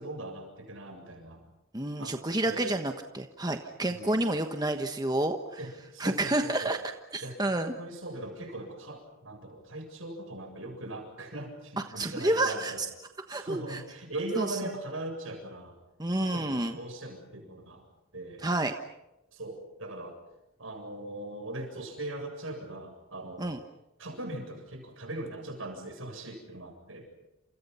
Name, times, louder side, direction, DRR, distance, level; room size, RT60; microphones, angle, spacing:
voice 1, 0.0-1.4 2.0-2.2 2.5-2.8 3.9-4.2 5.6-6.7 7.2-12.8 13.3-15.8 16.2-17.9 18.1-18.5 19.3-20.2 20.6-23.6 24.0-27.1, right 1 dB, 75° right, 4 dB, 7.7 m, -40 dB
voice 2, 1.7-5.6 6.0-6.8 7.1-7.7 11.8-12.9 13.3-13.8 14.4-14.6 16.0-16.8 18.4-18.7 23.4-23.6, right 1 dB, 20° right, 6 dB, 1.2 m, -29 dB
29.5 x 28.5 x 5.7 m, 0.93 s
head